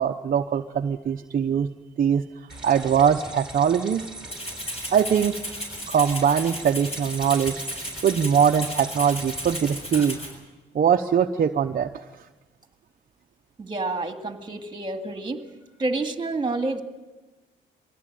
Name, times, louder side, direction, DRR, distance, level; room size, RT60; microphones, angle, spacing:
voice 1, 0.0-1.7 2.0-2.2 2.6-4.0 4.9-5.4 5.9-7.6 8.0-10.2 10.7-11.9, right 8 dB, 45° right, 4 dB, 0.9 m, -22 dB
sound 1, 2.5-10.4, right 2 dB, 5° right, 4.8 m, -40 dB
Rattle (instrument), 4.3-10.3, equal, 30° left, 7.6 m, -35 dB
voice 2, 13.6-15.5 15.8-16.8, right 2 dB, 25° right, 6 dB, 2.2 m, -29 dB
22.5 x 17.0 x 9.2 m, 1.2 s
cardioid pair, 90°, 20 cm